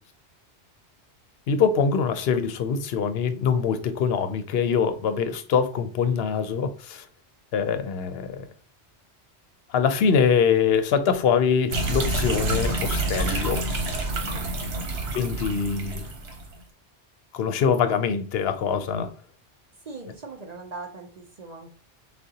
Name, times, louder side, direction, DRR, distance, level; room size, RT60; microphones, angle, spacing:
voice 1, 1.5-7.0 7.5-8.5 9.7-13.6 15.1-16.0 17.3-19.1, left 6 dB, 65° left, 0.8 m, -24 dB
sound 1, 11.7-16.5, right 2 dB, 65° right, 1.1 m, -28 dB
voice 2, 14.3-14.9 19.9-21.7, right 3 dB, 45° right, 0.6 m, -40 dB
6.3 x 2.3 x 2.7 m
omnidirectional pair, 1.2 m